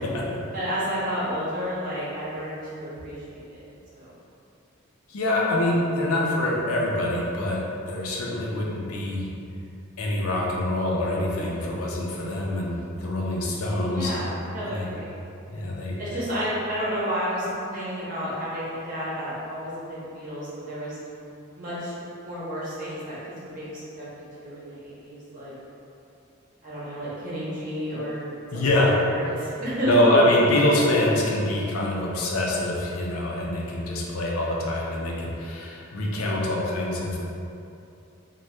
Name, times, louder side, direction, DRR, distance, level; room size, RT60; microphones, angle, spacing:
voice 1, 0.5-3.6 3.9-4.1 13.9-15.1 16.0-21.0 21.5-24.1 24.4-25.5 26.6-28.3 28.5-30.3 30.6-30.8, equal, 40° right, -9 dB, 0.8 m, -31 dB
voice 2, 5.1-7.6 7.9-9.4 10.0-14.2 14.6-14.9 15.5-16.2 28.5-29.0 29.9-37.2, left 1 dB, 80° left, -3 dB, 0.5 m, -25 dB
2.8 x 2.2 x 3.2 m, 2.7 s
head